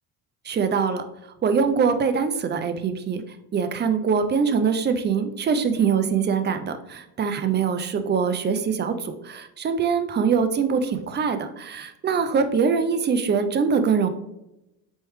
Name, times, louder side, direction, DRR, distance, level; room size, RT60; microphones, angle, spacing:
voice 1, 0.4-1.0 1.4-3.2 3.5-14.1, right 6 dB, 25° right, 9 dB, 0.4 m, -23 dB
4.5 x 3.3 x 3.0 m, 0.90 s
supercardioid pair, 80°, 45 cm